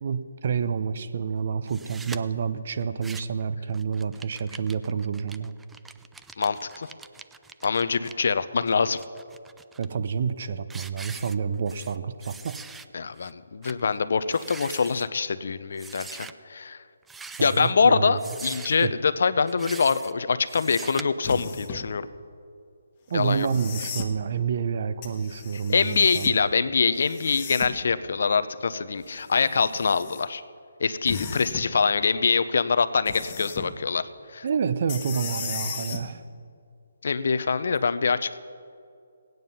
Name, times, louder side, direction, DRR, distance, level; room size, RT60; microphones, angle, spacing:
voice 1, 0.0-5.6 9.8-12.6 17.4-18.2 18.8-18.9 23.1-26.4 34.4-36.2, right 6 dB, 50° right, 11 dB, 0.7 m, -28 dB
sound 1, 1.7-2.2 2.8-3.4 3.7-8.1 8.7-9.9 10.3-10.4 10.7-12.0 12.2-12.9 13.2-13.3 13.6-13.8 14.2-15.1 15.8-16.3 17.0-17.7 18.2-18.9 19.5-20.1 20.5-21.0, right 4 dB, 5° right, 0.3 m, -43 dB
voice 2, 6.4-6.9 7.6-9.0 12.9-16.8 17.4-22.1 23.1-23.5 25.7-30.4 30.8-34.0 34.3-34.4 37.0-38.4, left 5 dB, 60° left, 13 dB, 0.6 m, -24 dB
sound 2, 21.2-21.9 23.2-24.1 25.0-26.4 27.0-27.9 29.0-30.2 31.1-31.7 33.1-33.7 34.9-36.0 37.8-37.9, left 6 dB, 25° left, 1.2 m, -36 dB
17.0 x 9.3 x 5.5 m, 2.4 s
hypercardioid pair, 155°, 0 cm